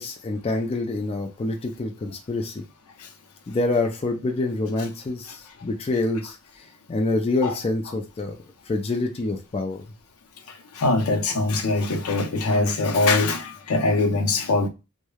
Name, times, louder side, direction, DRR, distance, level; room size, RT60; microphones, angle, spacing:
voice 1, 0.0-2.6 3.5-8.4 8.7-9.8, left 2 dB, 25° left, 0.3 m, -26 dB
voice 2, 10.8-14.7, left 3 dB, 80° left, 0.6 m, -22 dB
3.0 x 2.1 x 2.2 m
head